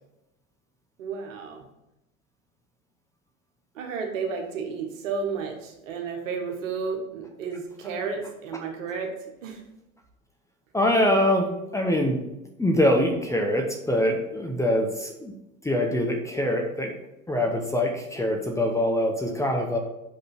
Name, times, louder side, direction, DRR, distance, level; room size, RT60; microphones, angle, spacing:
voice 1, 1.0-1.6 3.7-9.6, right 5 dB, 65° right, 2 dB, 1.5 m, -32 dB
voice 2, 10.7-11.5 11.7-12.2 12.6-15.3 15.6-16.9 17.3-19.8, left 1 dB, 5° left, 2 dB, 0.8 m, -24 dB
6.0 x 5.3 x 4.1 m, 0.91 s
figure-of-eight pair, 75°, 42 cm